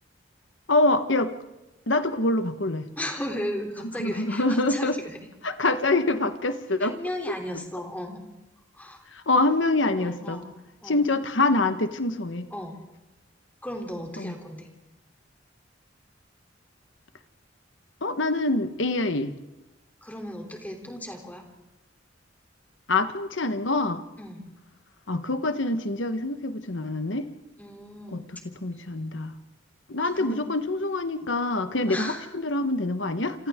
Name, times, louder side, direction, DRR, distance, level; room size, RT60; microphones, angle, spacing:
voice 1, 0.7-1.3 1.9-2.9 4.0-5.0 5.4-7.0 9.1-10.4 10.9-12.5 14.2-14.3 18.0-19.3 22.9-24.0 25.1-27.3 28.1-28.2 28.6-29.3 29.9-33.5, left 2 dB, 75° left, 9 dB, 1.3 m, -25 dB
voice 2, 3.0-5.2 6.8-8.3 8.7-9.0 10.0-11.1 12.5-12.8 13.6-14.7 20.0-21.5 24.2-24.5 27.6-28.4 30.0-30.4 31.9-32.3, left 1 dB, 10° left, 2 dB, 3.3 m, -36 dB
29.0 x 28.0 x 3.7 m, 1.0 s
head